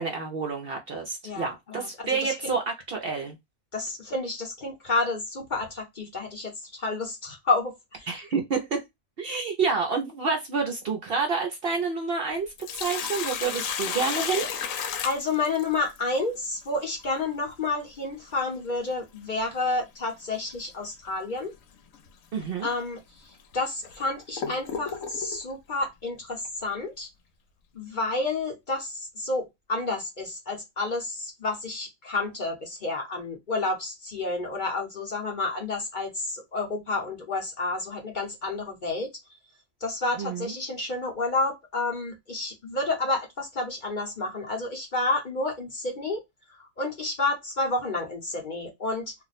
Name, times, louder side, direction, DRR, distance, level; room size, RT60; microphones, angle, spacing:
voice 1, 0.0-3.4 8.1-8.8 9.2-14.5 22.3-22.7 40.2-40.5, right 4 dB, 60° right, 0.7 m, -29 dB
voice 2, 1.2-2.5 3.7-8.1 15.0-21.5 22.6-23.0 23.5-27.1 27.7-39.1 39.8-46.2 46.6-49.1, left 3 dB, 45° left, 0.8 m, -30 dB
Sink (filling or washing), 12.4-16.0 18.4-18.5 20.3-20.6 21.1-21.2 21.9-22.1 22.8-22.9 23.5-25.4, left 7 dB, 85° left, 1.0 m, -33 dB
2.4 x 2.1 x 3.9 m
omnidirectional pair, 1.4 m